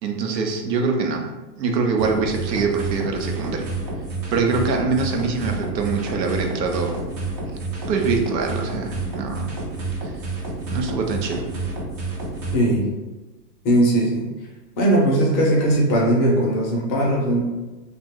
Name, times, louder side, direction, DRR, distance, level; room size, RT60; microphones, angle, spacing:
voice 1, 0.0-3.7 4.3-7.0 7.9-9.5 10.0-10.1 10.7-11.5, right 4 dB, 85° right, 3 dB, 0.7 m, -24 dB
sound 1, 2.0-12.6, right 3 dB, 25° right, 0.4 m, -29 dB
voice 2, 12.5-12.9 13.6-14.2 14.8-17.4, right 1 dB, 25° left, -3 dB, 0.5 m, -19 dB
2.5 x 2.2 x 3.5 m, 1.2 s
hypercardioid pair, 130°, 49 cm